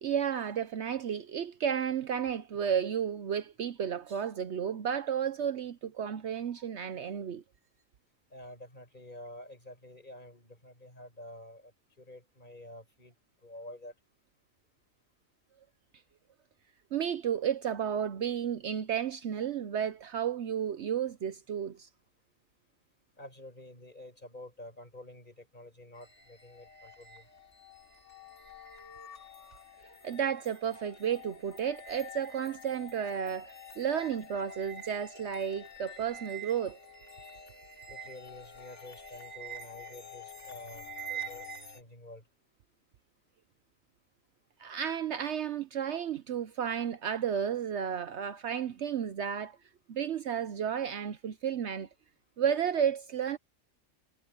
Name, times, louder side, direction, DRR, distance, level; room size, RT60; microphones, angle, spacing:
voice 1, 0.0-7.4 16.9-21.9 29.8-36.8 44.6-49.6 49.9-51.9 52.4-53.4, right 8 dB, 65° right, 0.9 m, -32 dB
voice 2, 8.3-11.7 12.0-13.1 13.4-13.9 23.2-27.2 37.9-42.2, left 1 dB, 35° left, 6.6 m, -49 dB
sound 1, 26.0-41.8, right 1 dB, 60° left, 2.9 m, -47 dB
omnidirectional pair, 1.4 m